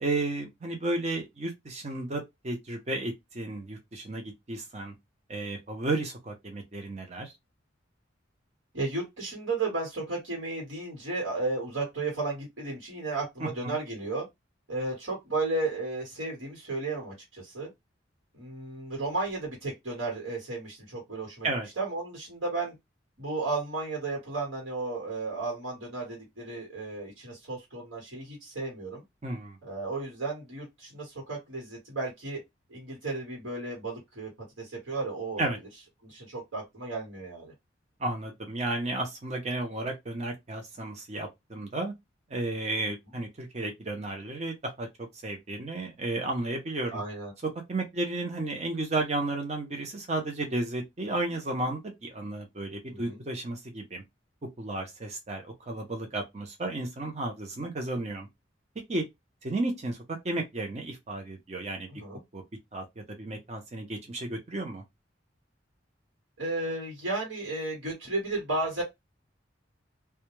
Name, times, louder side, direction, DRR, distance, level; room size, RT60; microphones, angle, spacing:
voice 1, 0.0-4.9 5.3-7.3 13.4-13.8 21.4-21.7 29.2-29.6 35.4-35.6 38.0-41.9 42.3-47.0 47.4-54.0 54.6-58.3 58.9-59.0 59.4-60.0 60.2-61.9 62.3-62.4 62.7-64.8, right 2 dB, 35° right, 0.6 m, -33 dB
voice 2, 8.7-14.2 14.7-17.7 18.3-21.5 21.8-22.7 23.2-29.0 29.6-32.4 32.7-34.3 34.6-35.5 36.0-37.5 46.9-47.3 52.9-53.2 61.9-62.2 66.4-68.8, right 3 dB, 80° right, 1.3 m, -34 dB
2.3 x 2.2 x 3.0 m
head